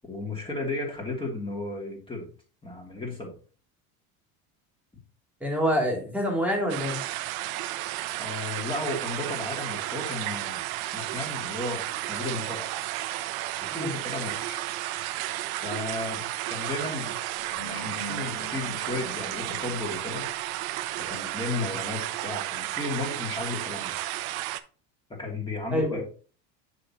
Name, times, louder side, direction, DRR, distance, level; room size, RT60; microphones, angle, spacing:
voice 1, 0.0-2.3 2.6-3.4 8.1-10.6 10.9-11.8 12.1-12.7 13.6-14.6 15.6-17.2 17.7-20.3 21.0-24.0 25.2-26.0, left 3 dB, 15° left, 0 dB, 2.7 m, -34 dB
voice 2, 5.4-7.0 13.7-13.9 25.7-26.0, equal, 5° right, -1 dB, 2.7 m, -26 dB
sound 1, 6.7-24.6, right 15 dB, 80° right, 0.7 m, -33 dB
sound 2, 17.3-20.2, left 2 dB, 70° left, 3.5 m, -43 dB
6.4 x 6.3 x 2.9 m, 0.39 s
supercardioid pair, 105°, 41 cm